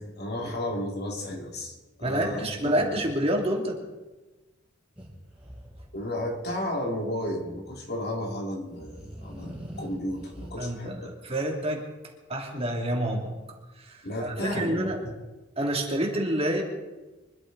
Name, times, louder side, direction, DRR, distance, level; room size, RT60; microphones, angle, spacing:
voice 1, 0.0-3.0 5.9-11.1 14.0-15.1, left 1 dB, 55° left, 1 dB, 2.8 m, -33 dB
voice 2, 2.0-3.8 10.6-11.9 12.3-13.3 13.8-15.0 15.6-16.6, right 1 dB, 30° right, 0 dB, 2.8 m, -28 dB
sound 1, 5.0-6.3 8.5-10.5, equal, 5° right, 5.9 m, -43 dB
24.5 x 13.0 x 4.1 m, 1.2 s
head